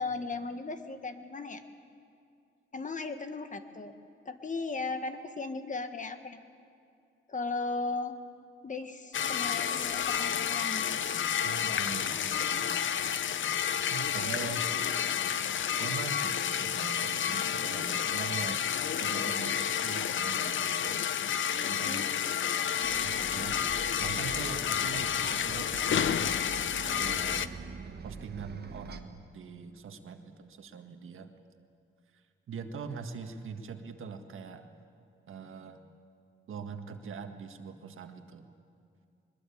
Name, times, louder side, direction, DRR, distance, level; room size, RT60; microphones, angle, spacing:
voice 1, 0.0-1.6 2.7-3.9 4.2-6.4 7.3-8.2 8.6-11.0 21.8-22.1, left 3 dB, 40° left, 8 dB, 1.5 m, -36 dB
sound 1, 9.1-27.5, left 9 dB, 70° left, 0.7 m, -30 dB
voice 2, 11.4-12.7 13.9-14.7 15.8-18.6 19.0-21.0 21.5-22.1 23.0-23.6 24.0-26.4 27.0-27.5 28.0-31.3 32.5-34.7 35.3-35.8 36.5-38.5, right 5 dB, 80° right, 6 dB, 1.7 m, -42 dB
Bus, 22.8-29.0, right 4 dB, 50° right, 1.5 m, -44 dB
22.0 x 21.5 x 8.6 m, 2.5 s
cardioid pair, 105°, 21 cm